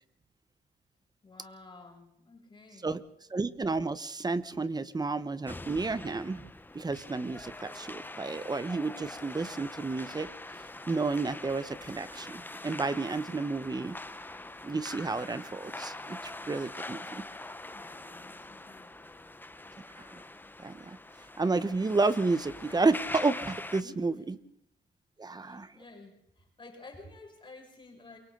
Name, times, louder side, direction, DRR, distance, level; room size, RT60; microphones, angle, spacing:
voice 1, 1.2-2.9 17.6-19.2 23.8-24.4 25.3-28.2, left 2 dB, 25° left, 1 dB, 6.7 m, -52 dB
voice 2, 3.3-10.3 10.9-14.0 14.6-17.2 20.0-20.2 20.6-21.0 21.4-24.1 25.2-25.7, right 3 dB, 20° right, 14 dB, 1.1 m, -31 dB
sound 1, 5.5-23.8, left 2 dB, 10° left, 0.9 m, -43 dB
28.5 x 23.5 x 3.9 m, 0.73 s
cardioid pair, 115°, 18 cm